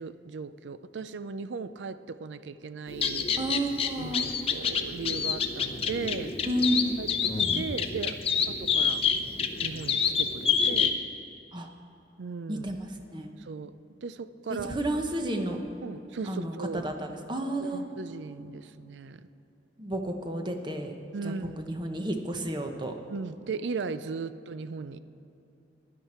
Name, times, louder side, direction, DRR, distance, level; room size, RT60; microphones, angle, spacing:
voice 1, 0.0-3.3 4.0-6.4 7.0-8.2 8.5-9.0 9.6-10.9 12.2-12.7 13.4-13.7 14.0-14.8 15.8-16.8 17.6-19.2 21.1-21.6 23.1-25.0, right 4 dB, 85° right, 13 dB, 0.5 m, -37 dB
sound 1, 2.9-10.9, left 6 dB, 35° left, 0.7 m, -28 dB
voice 2, 3.4-4.3 6.4-7.0 11.5-11.7 12.5-13.3 14.5-15.6 16.3-17.8 19.8-20.9 21.2-22.9, right 1 dB, 25° right, 4 dB, 1.0 m, -31 dB
15.5 x 10.5 x 4.4 m, 2.9 s
head